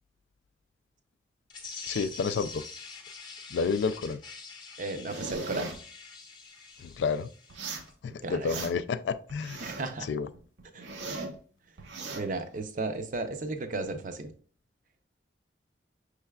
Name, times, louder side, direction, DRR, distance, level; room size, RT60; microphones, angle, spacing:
sound 1, 1.5-7.9, left 4 dB, 25° left, 0.7 m, -45 dB
voice 1, 1.9-2.6 3.5-4.2 7.0-7.3 8.0-9.6 10.1-10.3, left 5 dB, 80° left, 0.3 m, -30 dB
voice 2, 4.8-5.7 8.2-8.6 9.6-10.1 10.7-10.9 12.1-14.3, right 3 dB, 45° right, 0.5 m, -34 dB
sound 2, 5.1-5.8 7.5-7.9 8.3-8.9 9.3-9.9 10.3-11.4 11.8-12.2, right 3 dB, 90° right, 0.7 m, -38 dB
5.5 x 3.3 x 2.3 m
head